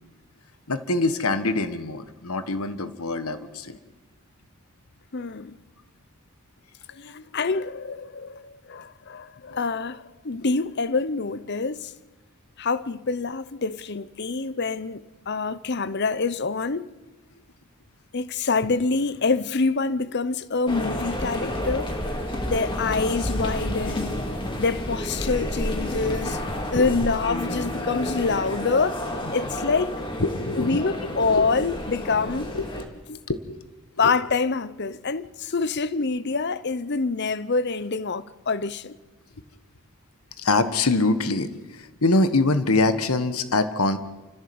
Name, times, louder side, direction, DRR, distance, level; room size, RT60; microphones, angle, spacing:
voice 1, 0.7-3.8 6.9-7.2 25.4-25.5 26.8-26.9 30.2-30.9 31.3-31.5 32.5-32.7 33.3-33.4 34.0-34.1 40.4-44.0, left 2 dB, 80° left, 1.5 m, -24 dB
voice 2, 5.1-5.6 7.0-11.9 12.6-16.9 18.1-21.9 22.5-24.2 24.6-26.5 26.7-29.0 29.3-30.0 30.6-32.5 33.1-33.2 34.0-38.9, left 4 dB, 50° left, 0.7 m, -26 dB
sound 1, 20.7-32.8, left 1 dB, 20° left, 2.3 m, -30 dB
29.0 x 14.5 x 7.9 m
head